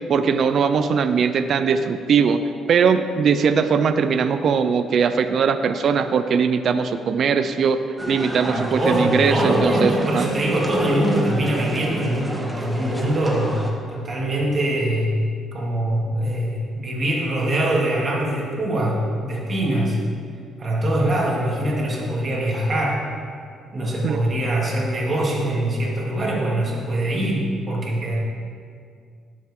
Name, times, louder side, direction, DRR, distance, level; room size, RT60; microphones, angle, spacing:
voice 1, 0.1-2.4 2.7-7.8 8.1-10.3 24.0-24.2, right 6 dB, 55° right, 9 dB, 0.5 m, -20 dB
sound 1, 8.0-13.7, right 1 dB, 5° right, 1.5 m, -30 dB
voice 2, 8.5-15.2 15.5-20.0 20.6-23.0 23.7-28.2, right 1 dB, 35° right, -3 dB, 2.7 m, -23 dB
17.5 x 7.6 x 3.8 m, 2.2 s
cardioid pair, 100°, 0 cm